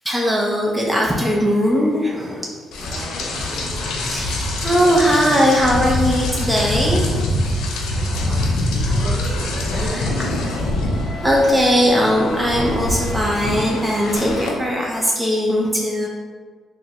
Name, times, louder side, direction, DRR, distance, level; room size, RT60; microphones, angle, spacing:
voice 1, 0.1-2.5 2.8-3.0 4.0-7.2 9.2-9.3 11.2-16.1, equal, 5° right, -3 dB, 0.5 m, -19 dB
Rain, 2.7-14.5, left 1 dB, 90° left, 0.4 m, -24 dB
voice 2, 2.9-4.7 7.5-10.8, right 1 dB, 45° right, -2 dB, 0.7 m, -35 dB
3.7 x 2.1 x 2.9 m, 1.5 s
cardioid pair, 90°, 0 cm